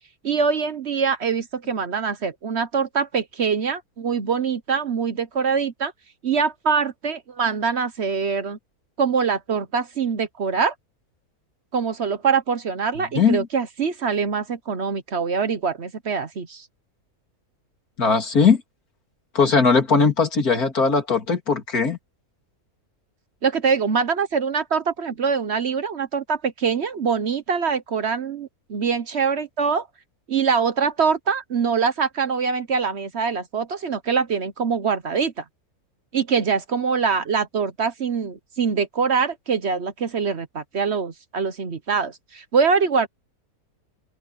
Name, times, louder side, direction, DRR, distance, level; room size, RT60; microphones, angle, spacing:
voice 1, 0.2-5.9 6.2-8.6 9.0-10.7 11.7-16.7 23.4-29.9 30.3-35.4 36.1-43.1, right 5 dB, 50° right, 1.1 m, -24 dB
voice 2, 13.1-13.5 18.0-18.6 19.3-22.0, left 5 dB, 80° left, 3.4 m, -19 dB
open air
omnidirectional pair, 1.6 m